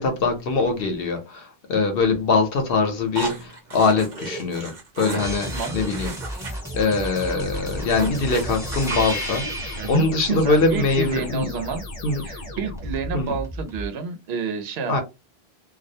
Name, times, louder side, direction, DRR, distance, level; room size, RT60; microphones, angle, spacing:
voice 1, 0.0-6.1 6.7-11.5 12.0-12.2 13.1-13.3 14.9-15.0, left 3 dB, 70° left, 0.9 m, -23 dB
sound 1, 3.1-6.5 6.8-6.9 7.2-7.3 7.6-9.5, right 3 dB, 50° right, 0.8 m, -35 dB
sound 2, 5.2-10.0 12.8-13.9, equal, 5° right, 0.6 m, -32 dB
sound 3, 6.5-13.3, left 1 dB, 40° left, 0.8 m, -37 dB
voice 2, 9.8-11.8 12.2-15.0, right 4 dB, 85° right, 0.8 m, -29 dB
2.3 x 2.1 x 2.6 m
omnidirectional pair, 1.0 m